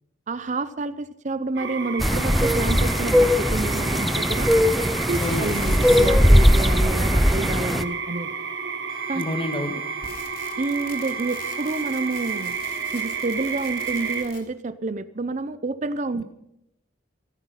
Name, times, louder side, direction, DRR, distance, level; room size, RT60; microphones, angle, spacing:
voice 1, 0.3-4.5 5.1-8.3 9.1-9.2 10.6-12.6 12.9-16.2, right 3 dB, 40° right, 14 dB, 0.6 m, -29 dB
sound 1, 1.6-14.2, right 5 dB, 60° right, 1.8 m, -31 dB
sound 2, 2.0-7.8, equal, ahead, 0.6 m, -19 dB
sound 3, 5.1-8.0 8.9-14.4, left 4 dB, 50° left, 3.5 m, -44 dB
voice 2, 5.2-5.5 9.1-9.7, left 1 dB, 25° left, 8 dB, 1.6 m, -28 dB
16.0 x 13.5 x 5.7 m, 0.81 s
head